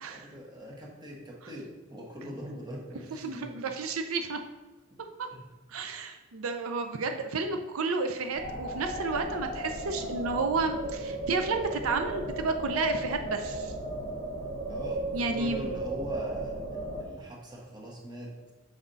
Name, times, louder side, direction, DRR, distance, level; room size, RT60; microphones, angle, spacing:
voice 1, 0.1-3.6 5.3-5.4 14.7-18.5, equal, 20° right, -2 dB, 1.2 m, -41 dB
voice 2, 3.1-4.4 5.2-5.3 5.7-13.7 15.1-15.7, right 4 dB, 90° right, 6 dB, 0.5 m, -31 dB
sound 1, 8.3-17.0, right 1 dB, 50° right, 1.6 m, -35 dB
6.1 x 5.0 x 4.0 m, 1.2 s
head